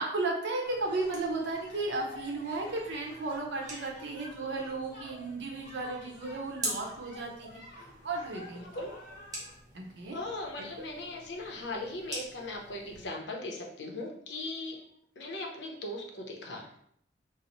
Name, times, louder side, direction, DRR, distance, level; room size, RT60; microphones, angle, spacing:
voice 1, 0.0-7.6 8.0-8.7 9.7-10.2 10.6-10.7, right 3 dB, 85° right, 0 dB, 0.7 m, -34 dB
sound 1, 0.6-9.5, left 1 dB, 45° left, 0.9 m, -50 dB
sound 2, 0.7-13.1, right 1 dB, 20° right, 0.9 m, -46 dB
voice 2, 8.5-9.0 10.1-14.8 15.2-16.7, left 2 dB, 80° left, 1 dB, 0.6 m, -39 dB
2.8 x 2.0 x 4.0 m, 0.69 s
head